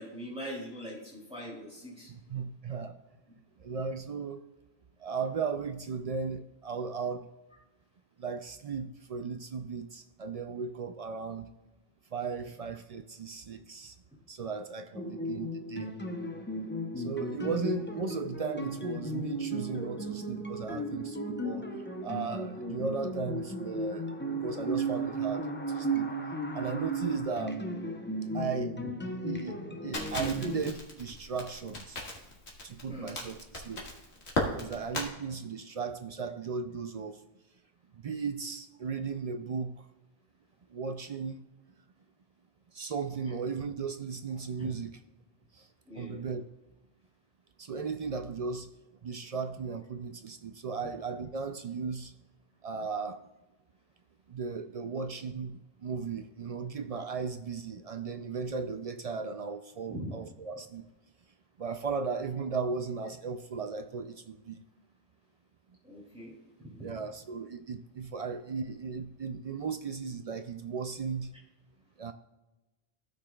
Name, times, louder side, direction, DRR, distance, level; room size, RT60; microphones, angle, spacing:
voice 1, 0.0-2.1 17.3-17.5 28.8-28.9 32.9-33.1 44.6-44.7 45.8-46.2 50.8-50.9 54.9-55.0 59.9-60.2 65.8-67.0, equal, 5° right, -5 dB, 2.8 m, -42 dB
voice 2, 2.1-3.0 3.6-4.4 5.0-7.3 8.2-11.5 12.1-14.0 14.3-15.9 17.0-21.7 22.0-26.1 26.5-27.6 28.3-28.8 29.2-32.0 32.6-33.8 34.6-37.2 37.9-39.9 40.7-41.4 42.7-44.9 45.5-45.7 46.0-46.5 47.6-48.7 49.0-52.1 52.6-53.2 54.3-60.8 61.6-64.6 66.8-71.3 72.0-72.1, right 5 dB, 60° right, 8 dB, 0.4 m, -36 dB
sound 1, 14.9-30.7, right 1 dB, 15° left, 0.5 m, -35 dB
Crackle, 29.9-35.1, left 1 dB, 85° left, 1.9 m, -36 dB
15.0 x 6.6 x 2.3 m, 1.0 s
omnidirectional pair, 1.1 m